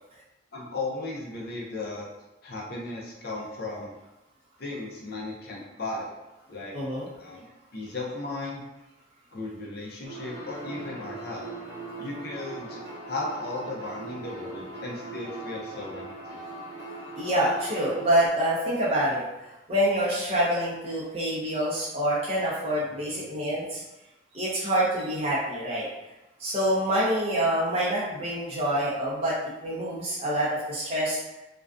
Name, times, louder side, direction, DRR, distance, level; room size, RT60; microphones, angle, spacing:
voice 1, 0.5-2.1 2.4-3.9 4.6-6.1 6.5-6.7 7.2-7.5 7.7-8.6 9.3-11.5 12.0-12.8 13.1-16.4, left 2 dB, 50° left, -2 dB, 0.4 m, -35 dB
voice 2, 6.7-7.1 17.2-19.2 19.7-23.8 24.3-25.9 26.4-29.3 29.6-31.2, right 1 dB, 30° right, -8 dB, 0.5 m, -26 dB
sound 1, 10.0-18.3, right 2 dB, 60° right, 0.8 m, -40 dB
2.4 x 2.2 x 2.3 m, 1.0 s
head